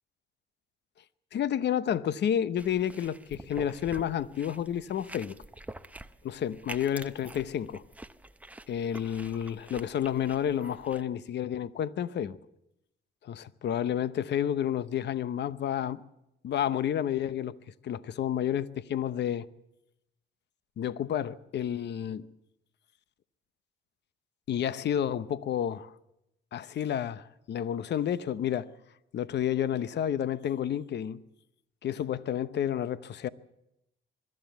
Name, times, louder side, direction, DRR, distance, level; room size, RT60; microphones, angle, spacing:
voice 1, 1.3-5.4 6.2-7.8 8.7-12.4 13.2-16.0 16.4-17.5 17.8-19.5 20.8-22.3 24.5-25.9 26.5-28.7 29.1-31.2 31.8-33.3, left 9 dB, 60° left, 0.9 m, -30 dB
sound 1, 2.6-11.0, right 1 dB, 5° right, 0.7 m, -47 dB
22.5 x 13.5 x 9.2 m
cardioid pair, 90°, 20 cm